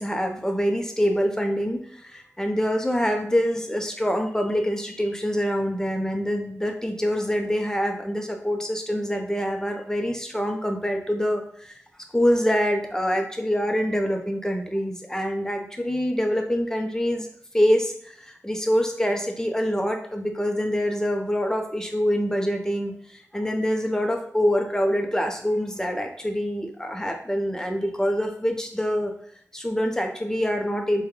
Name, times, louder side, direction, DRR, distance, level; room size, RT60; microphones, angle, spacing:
voice 1, 0.0-11.8 12.1-17.3 17.5-29.1 29.5-31.0, equal, 10° left, 3 dB, 0.6 m, -25 dB
3.6 x 2.3 x 3.0 m, 0.62 s
cardioid pair, 45°, 6 cm